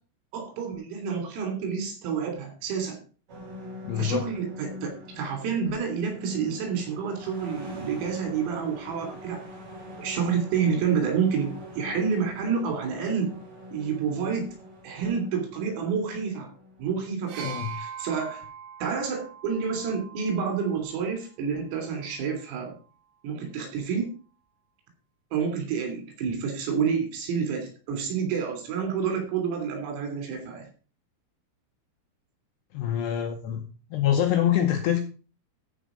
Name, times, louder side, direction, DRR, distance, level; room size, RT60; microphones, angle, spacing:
voice 1, 0.3-3.0 4.0-9.4 10.0-13.3 13.7-14.5 14.8-16.5 16.8-18.4 18.8-22.8 23.2-24.1 25.3-30.7, right 6 dB, 85° right, 4 dB, 5.7 m, -29 dB
sound 1, 3.3-17.1, left 1 dB, 35° right, 3.1 m, -44 dB
voice 2, 3.8-4.2 17.4-17.7 32.7-33.6 33.9-35.0, left 10 dB, 75° left, 5 dB, 2.5 m, -25 dB
sound 2, 17.3-21.1 22.1-22.3, right 7 dB, 70° right, 4.3 m, -42 dB
14.0 x 5.4 x 5.1 m, 0.36 s
omnidirectional pair, 5.9 m